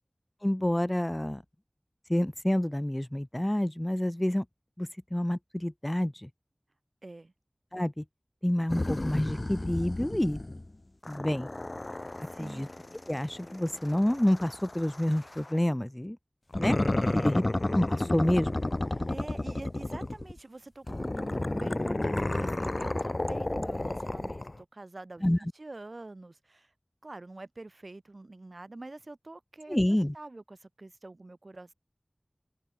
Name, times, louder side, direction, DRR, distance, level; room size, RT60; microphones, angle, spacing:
voice 1, 0.4-1.4 2.1-4.4 4.8-6.3 7.7-8.0 8.4-10.4 11.1-11.5 12.4-12.7 13.1-16.2 16.6-16.8 17.1-17.4 17.7-18.6 25.2-25.4 29.7-30.1, left 1 dB, 20° left, 1.2 m, -28 dB
voice 2, 7.0-7.3 12.2-12.7 17.0-17.4 18.9-26.7 27.0-31.7, right 2 dB, 70° right, 3.7 m, -46 dB
sound 1, 8.7-10.7 11.0-15.6 16.5-20.4 20.9-24.6, left 2 dB, 50° left, 1.4 m, -32 dB
wide cardioid pair, 45°, 0 cm